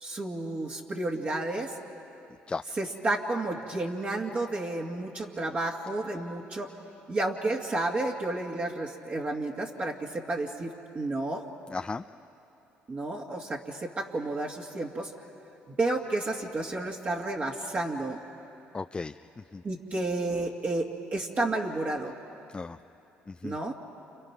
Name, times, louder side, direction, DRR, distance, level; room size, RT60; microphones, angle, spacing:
voice 1, 0.0-1.7 2.8-6.7 7.1-11.4 12.9-15.1 15.7-18.2 19.6-22.1 23.4-23.8, right 2 dB, 40° right, -2 dB, 2.2 m, -31 dB
voice 2, 11.7-12.0 18.7-19.6 22.5-22.8 23.3-23.6, left 4 dB, 25° left, 8 dB, 0.5 m, -36 dB
29.5 x 27.5 x 6.1 m, 2.9 s
supercardioid pair, 70°, 4 cm